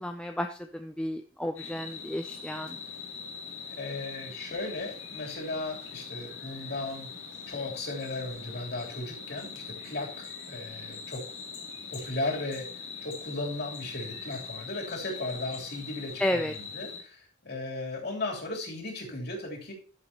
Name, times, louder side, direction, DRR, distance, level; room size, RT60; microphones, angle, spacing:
voice 1, 0.0-2.8 16.2-16.5, left 1 dB, 5° left, 5 dB, 0.5 m, -32 dB
sound 1, 1.6-17.0, left 5 dB, 85° left, 2.8 m, -42 dB
voice 2, 3.6-7.1 7.5-11.3 11.9-19.7, left 2 dB, 55° left, -1 dB, 3.2 m, -36 dB
13.5 x 7.2 x 2.9 m, 0.39 s
head